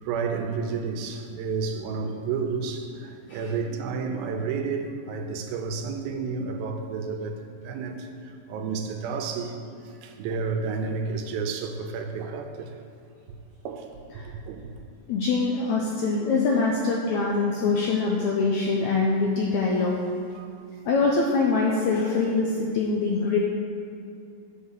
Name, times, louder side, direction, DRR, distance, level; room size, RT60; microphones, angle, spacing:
voice 1, 0.0-9.6 9.8-12.7 13.6-13.9 14.5-14.7 20.3-20.5 20.8-20.9, right 5 dB, 85° right, 5 dB, 2.6 m, -31 dB
voice 2, 15.1-19.9 20.8-23.4, left 4 dB, 80° left, -2 dB, 1.6 m, -24 dB
8.1 x 4.7 x 7.2 m, 2.5 s
omnidirectional pair, 4.1 m